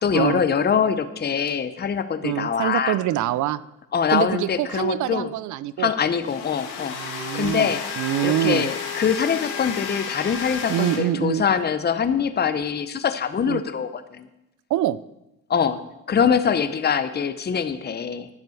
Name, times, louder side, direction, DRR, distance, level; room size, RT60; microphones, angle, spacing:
voice 1, 0.0-3.0 3.9-5.3 5.8-7.0 7.3-7.8 8.2-14.3 15.5-15.8 16.1-18.3, left 7 dB, 35° left, 11 dB, 0.8 m, -23 dB
sound 1, 1.5-1.6 6.1-11.0, left 6 dB, 90° left, 2.0 m, -32 dB
voice 2, 2.2-3.6 4.1-5.9 6.9-7.7 8.0-8.7 10.7-11.4 13.5-13.6 14.7-15.0, right 13 dB, 75° right, 18 dB, 0.5 m, -25 dB
10.5 x 7.9 x 7.1 m, 0.92 s
cardioid pair, 90°, 30 cm